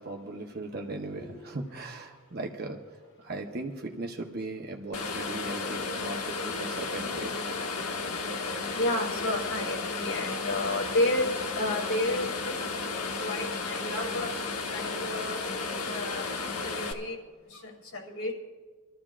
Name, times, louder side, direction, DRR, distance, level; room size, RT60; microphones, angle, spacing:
voice 1, 0.0-2.8 3.2-7.3 14.4-14.5, right 2 dB, 45° right, 1 dB, 0.9 m, -38 dB
sound 1, 4.9-16.9, left 3 dB, 85° left, 1.2 m, -33 dB
voice 2, 8.7-12.6 13.2-14.3 14.7-15.4 15.8-16.2 16.6-17.2 17.9-18.3, left 1 dB, 70° left, 0 dB, 2.8 m, -31 dB
26.0 x 13.5 x 2.5 m, 1.4 s
head